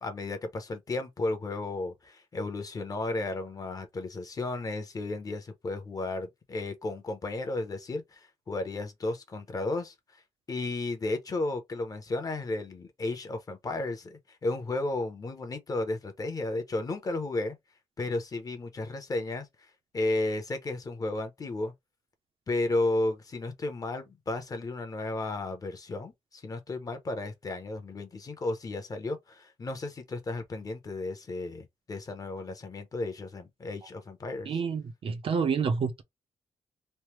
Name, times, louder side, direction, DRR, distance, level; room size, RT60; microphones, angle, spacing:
voice 1, 0.0-9.9 10.5-17.6 18.0-19.5 19.9-21.7 22.5-34.5, left 2 dB, 30° left, 0.6 m, -33 dB
voice 2, 34.5-36.0, right 6 dB, 50° right, 0.5 m, -28 dB
3.2 x 2.0 x 2.9 m
wide cardioid pair, 175°, 12 cm